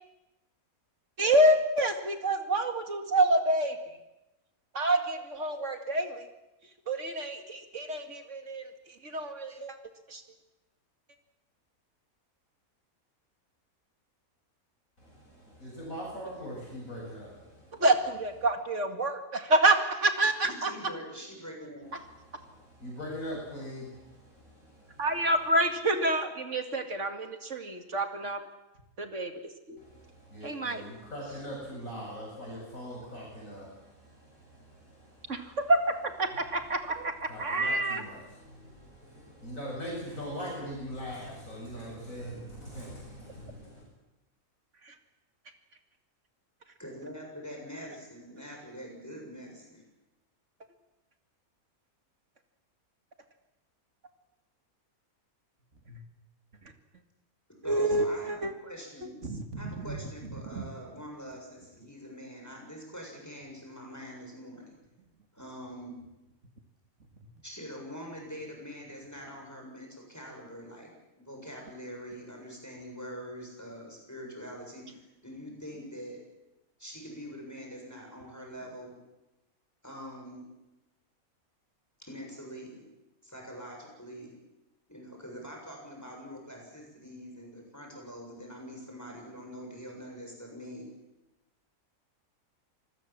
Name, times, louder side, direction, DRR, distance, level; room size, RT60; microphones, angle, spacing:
voice 1, 1.2-3.8 4.7-6.2 6.9-8.7 9.0-9.8 10.1-10.2 17.8-20.7 25.0-28.5 29.0-29.3 29.7-29.8 30.4-30.8 35.3-35.4 35.7-38.0 44.9-45.0 55.9-56.0 57.6-58.5 59.2-60.0 60.5-60.7, right 1 dB, 55° right, 6 dB, 2.6 m, -27 dB
voice 2, 15.0-17.9 22.2-25.1 29.8-35.6 37.3-43.8, equal, 65° left, -3 dB, 8.2 m, -42 dB
voice 3, 20.4-21.9 46.8-49.8 57.6-59.2 59.6-64.7 65.3-66.0 67.4-70.9 71.2-76.2 76.8-78.9 79.8-80.4 82.0-82.8 83.2-84.4 84.9-90.9, equal, 10° left, 0 dB, 7.3 m, -44 dB
26.5 x 19.5 x 7.5 m, 0.97 s
omnidirectional pair, 1.5 m